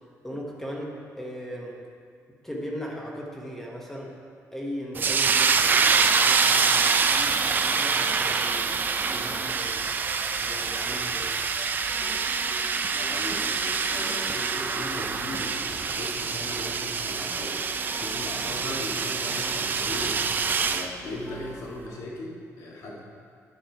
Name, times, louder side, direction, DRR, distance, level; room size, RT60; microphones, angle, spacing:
voice 1, 0.2-1.8 2.4-4.1 4.5-8.8 9.0-9.9 10.4-11.4, equal, 5° left, -2 dB, 1.1 m, -38 dB
sound 1, 5.0-20.9, right 5 dB, 35° right, 0.4 m, -25 dB
sound 2, 5.9-6.6 7.0-7.6 7.9-8.6 9.0-9.6 9.9-17.0 17.4-20.6 21.0-21.6, right 1 dB, 10° right, 1.4 m, -44 dB
voice 2, 12.9-17.6 18.0-20.2 20.6-23.0, left 1 dB, 75° left, -3 dB, 1.8 m, -38 dB
10.5 x 6.2 x 4.6 m, 2.2 s
cardioid pair, 145°, 6 cm